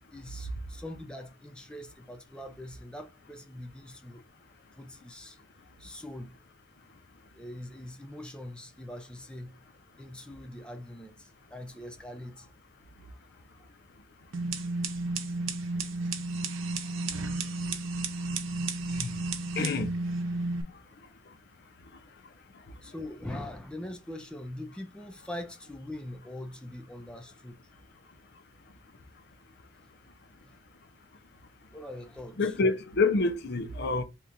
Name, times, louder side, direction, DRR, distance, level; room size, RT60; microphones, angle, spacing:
voice 1, 0.1-4.2 4.7-5.4 5.8-6.3 7.3-9.6 10.0-12.5 13.1-13.2 13.6-13.7 16.0-16.1 16.8-17.1 22.8-27.7 30.4-30.5 31.7-32.6, left 1 dB, 5° left, 0.5 m, -43 dB
sound 1, 14.3-20.6, right 3 dB, 85° right, 0.7 m, -32 dB
voice 2, 19.6-19.9 32.4-34.0, left 3 dB, 55° left, 0.6 m, -27 dB
3.8 x 2.9 x 3.5 m
head